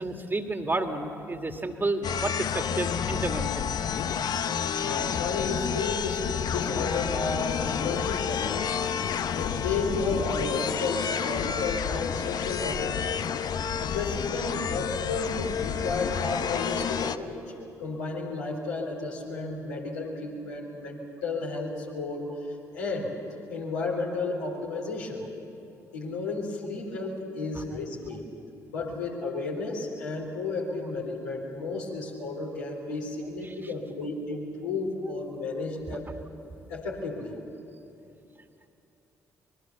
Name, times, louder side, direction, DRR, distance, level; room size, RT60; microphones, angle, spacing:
voice 1, 0.0-3.8 27.6-27.7 33.4-33.5, right 2 dB, 25° right, 5 dB, 2.0 m, -31 dB
sound 1, 2.0-17.2, left 7 dB, 50° left, 0.8 m, -30 dB
voice 2, 4.8-8.7 9.2-13.3 13.8-17.4 17.8-22.3 22.7-23.1 23.5-25.2 25.9-28.2 28.7-36.1 36.7-37.4, left 3 dB, 80° left, -2 dB, 3.6 m, -32 dB
25.0 x 21.5 x 7.1 m, 2.9 s
figure-of-eight pair, 45°, 9 cm